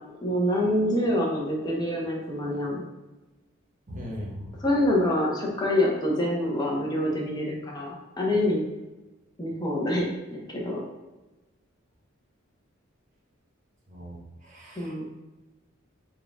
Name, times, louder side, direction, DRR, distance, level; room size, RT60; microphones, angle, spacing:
voice 1, 0.2-2.8 4.6-8.6 9.4-10.8 14.8-15.0, left 1 dB, 20° left, -3 dB, 0.8 m, -26 dB
voice 2, 3.9-4.5 13.9-14.2 14.4-15.1, equal, 40° right, -2 dB, 0.9 m, -39 dB
4.3 x 2.3 x 3.5 m, 1.1 s
head